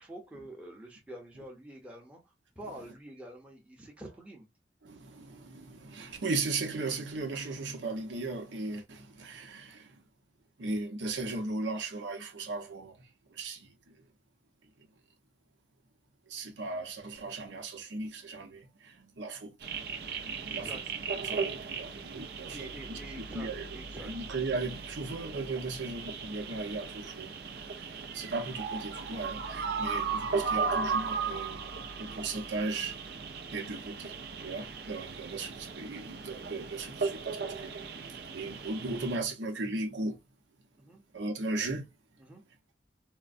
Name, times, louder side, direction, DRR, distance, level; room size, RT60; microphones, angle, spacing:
voice 1, 0.0-2.2 2.6-4.5 20.5-20.8 22.5-24.1 40.8-41.0 42.2-42.4, right 1 dB, 5° right, 0.8 m, -47 dB
voice 2, 4.8-9.9 10.6-13.1 13.4-13.7 16.3-19.6 20.2-20.7 21.2-23.0 23.3-23.7 24.0-31.7 32.0-33.0 33.5-34.1 34.4-37.7 38.0-40.2 41.1-41.9, right 3 dB, 85° right, 0.8 m, -37 dB
sound 1, 19.6-39.2, right 5 dB, 60° right, 0.6 m, -37 dB
3.8 x 2.1 x 2.5 m
head